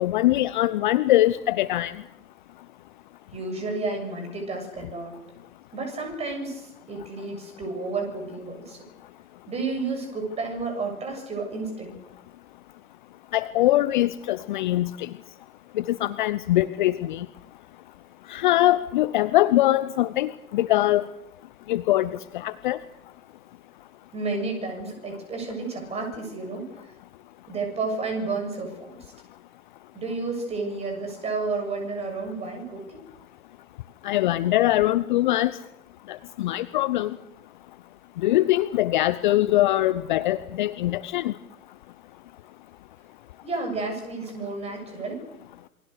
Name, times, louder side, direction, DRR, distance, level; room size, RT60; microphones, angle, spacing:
voice 1, 0.0-1.9 13.3-15.1 15.8-17.3 18.3-21.0 21.7-22.8 34.0-35.5 36.1-37.1 38.2-41.3, left 15 dB, 35° left, 15 dB, 0.8 m, -22 dB
voice 2, 3.3-5.2 5.7-8.8 9.5-12.0 24.1-26.8 27.5-29.1 29.9-33.0 43.4-45.3, right 3 dB, 15° right, 4 dB, 7.1 m, -31 dB
28.5 x 23.5 x 6.7 m, 0.83 s
figure-of-eight pair, 125°, 44 cm